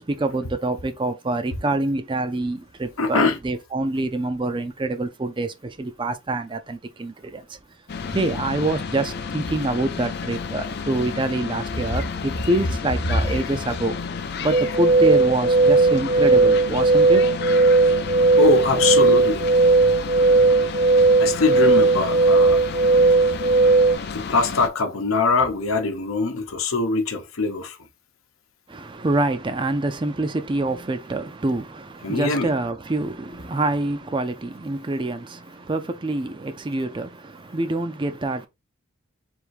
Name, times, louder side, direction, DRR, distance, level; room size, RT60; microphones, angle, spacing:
voice 1, 0.0-7.6 8.1-14.0 14.4-17.2 28.7-38.5, right 2 dB, 25° right, 0.4 m, -26 dB
voice 2, 3.0-3.4 18.4-19.4 21.2-22.6 24.1-27.8 32.0-32.5, left 4 dB, 80° left, 0.9 m, -22 dB
sound 1, 7.9-24.7, left 5 dB, 50° left, 0.5 m, -31 dB
sound 2, 14.5-23.9, right 3 dB, 70° right, 0.9 m, -17 dB
3.5 x 2.6 x 4.6 m
head